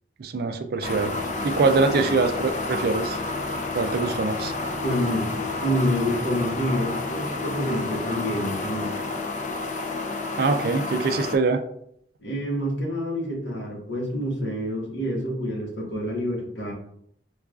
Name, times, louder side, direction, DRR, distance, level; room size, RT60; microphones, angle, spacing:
voice 1, 0.2-1.1 1.4-3.2 3.7-4.5 10.4-11.6, right 3 dB, 60° right, 8 dB, 0.4 m, -23 dB
sound 1, 0.8-11.4, left 3 dB, 40° left, 0.4 m, -30 dB
voice 2, 4.8-8.9 12.2-16.7, equal, 80° left, -2 dB, 1.1 m, -27 dB
4.7 x 2.4 x 2.4 m, 0.69 s
head